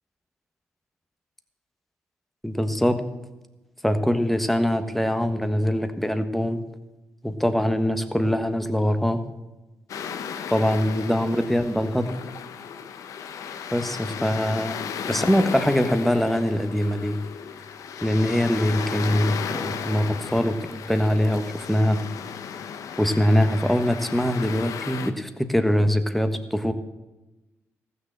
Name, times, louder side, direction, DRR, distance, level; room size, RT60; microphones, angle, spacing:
voice 1, 2.4-3.0 3.8-6.6 7.2-9.2 10.5-12.1 13.7-17.2 18.0-22.0 23.0-26.7, equal, 5° left, 8 dB, 1.3 m, -23 dB
sound 1, 9.9-25.1, left 7 dB, 75° left, 0.8 m, -35 dB
14.5 x 6.7 x 7.5 m, 1.1 s
supercardioid pair, 55°, 6 cm